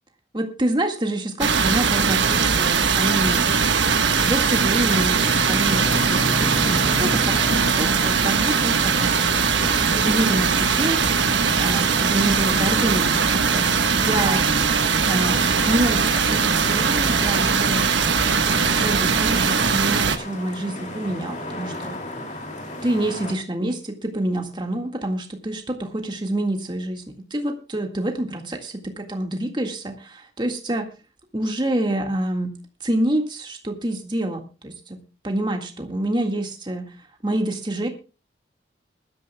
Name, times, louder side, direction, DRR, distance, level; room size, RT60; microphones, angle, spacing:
voice 1, 0.3-3.5 4.2-9.3 9.9-11.2 11.6-14.7 15.1-15.4 15.7-18.0 18.6-22.0 22.8-27.0 27.3-30.9 31.3-32.5 32.8-35.0 35.2-37.0 37.2-37.9, right 1 dB, 25° right, 4 dB, 1.8 m, -27 dB
sound 1, 1.4-20.2, right 5 dB, 85° right, 1.3 m, -20 dB
sound 2, 4.6-23.3, left 1 dB, 40° left, 2.6 m, -35 dB
21.5 x 12.5 x 2.3 m, 0.33 s
head